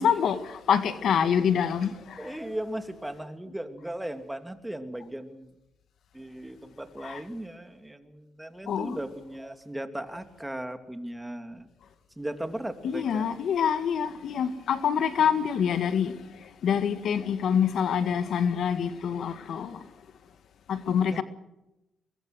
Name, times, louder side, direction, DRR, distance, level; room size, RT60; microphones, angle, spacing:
voice 1, 0.0-2.4 7.0-7.2 8.7-9.0 12.8-16.2 16.6-19.8 20.7-21.2, left 7 dB, 70° left, 1.7 m, -26 dB
voice 2, 2.2-5.5 6.1-11.7 12.2-13.3 21.1-21.2, right 1 dB, 10° right, 3.1 m, -37 dB
24.0 x 22.5 x 6.3 m
cardioid pair, 70°, 0 cm